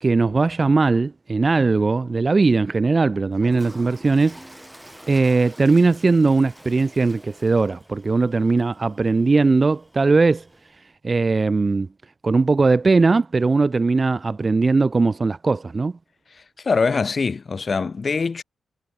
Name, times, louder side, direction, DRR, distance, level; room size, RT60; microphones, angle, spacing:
voice 1, 0.0-4.4 5.1-10.4 11.0-11.9 12.2-15.9, right 3 dB, 25° right, 0.7 m, -19 dB
Toilet flush, 3.3-10.8, equal, 5° right, 5.1 m, -46 dB
voice 2, 16.3-18.4, left 4 dB, 35° left, 3.3 m, -23 dB
wide cardioid pair, 155°, 0 cm